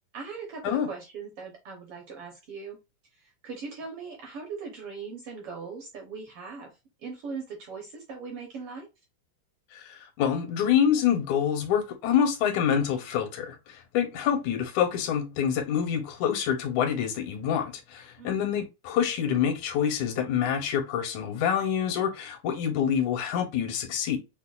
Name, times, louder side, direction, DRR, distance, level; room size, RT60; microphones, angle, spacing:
voice 1, 0.1-2.8 3.1-8.9 18.2-18.6, right 5 dB, 70° right, 1.5 m, -40 dB
voice 2, 9.7-24.2, left 8 dB, 85° left, 2.2 m, -26 dB
6.3 x 2.1 x 2.3 m
omnidirectional pair, 3.3 m